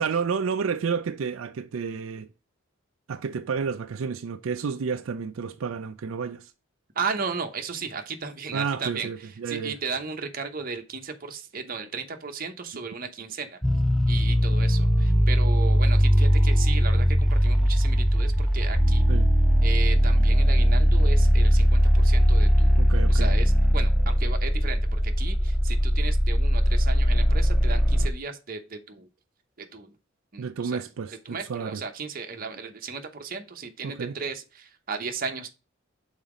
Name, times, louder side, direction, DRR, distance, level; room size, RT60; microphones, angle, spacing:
voice 1, 0.0-2.3 3.1-6.5 8.5-9.8 19.1-19.3 22.8-23.3 30.4-31.8 33.8-34.2, right 6 dB, 80° right, 0.4 m, -30 dB
voice 2, 7.0-9.1 9.5-13.6 14.1-19.1 19.6-29.1 29.6-29.9 30.3-30.8 31.3-35.5, right 5 dB, 45° right, 0.9 m, -35 dB
sound 1, 13.6-28.1, equal, ahead, 0.3 m, -20 dB
5.6 x 4.0 x 4.9 m
head